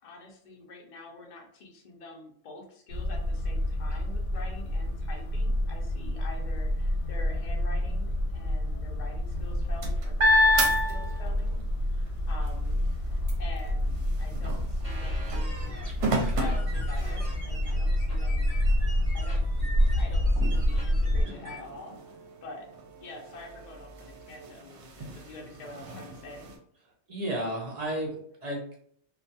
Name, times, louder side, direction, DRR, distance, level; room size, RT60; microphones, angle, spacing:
voice 1, 0.0-11.6 11.9-15.8 16.3-18.5 19.1-19.4 19.9-22.0 22.4-22.7 23.0-26.5, left 2 dB, 55° left, 0 dB, 0.5 m, -46 dB
sound 1, 2.9-21.2, left 1 dB, 75° left, 0.9 m, -28 dB
sound 2, 9.3-11.6 12.1-17.5 18.1-18.2 18.6-26.6, left 1 dB, 75° right, 0.9 m, -31 dB
sound 3, 14.8-21.6, right 1 dB, 40° right, 0.9 m, -44 dB
voice 2, 27.1-28.8, right 1 dB, 55° right, -2 dB, 0.4 m, -33 dB
2.3 x 2.2 x 2.6 m, 0.62 s
omnidirectional pair, 1.3 m